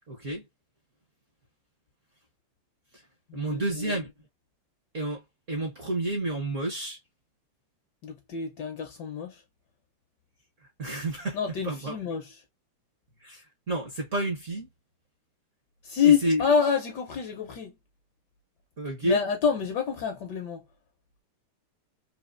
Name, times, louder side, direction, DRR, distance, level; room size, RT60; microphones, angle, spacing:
voice 1, 0.1-0.4 3.3-4.1 4.9-5.2 5.5-7.0 10.8-11.4 11.6-11.9 13.2-14.7 16.0-16.4 18.8-19.2, right 1 dB, 50° right, 1.0 m, -30 dB
voice 2, 3.3-4.0 8.0-9.4 11.3-12.3 15.8-17.7 19.0-20.6, left 7 dB, 65° left, 1.1 m, -27 dB
4.2 x 2.7 x 2.4 m
omnidirectional pair, 2.4 m